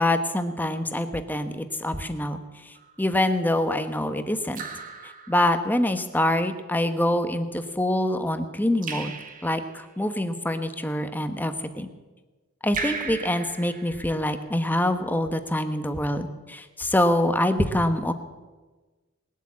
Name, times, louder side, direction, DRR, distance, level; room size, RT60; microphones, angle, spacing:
voice 1, 0.0-2.4 3.0-4.6 5.3-9.1 9.4-11.9 12.6-18.1, left 1 dB, 10° left, 8 dB, 1.0 m, -25 dB
Raindrop / Drip, 2.8-3.2 4.5-5.9 8.8-9.9 12.7-14.5, right 5 dB, 40° right, 1.7 m, -37 dB
20.0 x 8.3 x 8.5 m, 1.3 s
head